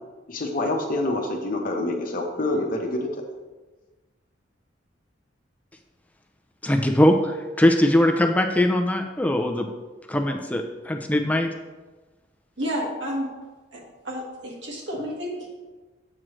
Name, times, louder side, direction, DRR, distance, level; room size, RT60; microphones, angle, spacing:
voice 1, 0.3-3.1, left 2 dB, 50° left, 3 dB, 0.9 m, -26 dB
voice 2, 6.6-9.7 10.1-11.5, left 1 dB, 10° left, 4 dB, 0.4 m, -21 dB
voice 3, 12.6-13.3 13.7-15.5, equal, 85° right, -2 dB, 1.6 m, -31 dB
7.4 x 6.2 x 3.1 m, 1.2 s
head